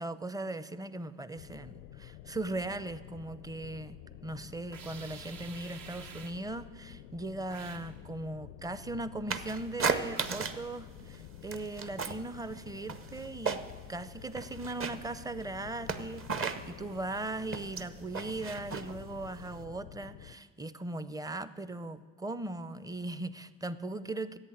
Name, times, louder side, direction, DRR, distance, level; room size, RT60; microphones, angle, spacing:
voice 1, 0.0-13.6 13.9-24.4, right 2 dB, 10° right, 14 dB, 0.6 m, -39 dB
sound 1, 1.4-20.4, left 12 dB, 80° left, 0.6 m, -50 dB
sound 2, 4.7-6.5 7.5-7.9 10.2-10.7, right 6 dB, 60° right, 1.1 m, -49 dB
sound 3, 9.3-10.7 11.0-12.3 12.6-13.9 14.2-19.6, right 5 dB, 35° right, 0.9 m, -35 dB
11.0 x 8.2 x 9.1 m, 1.5 s
hypercardioid pair, 55°, 37 cm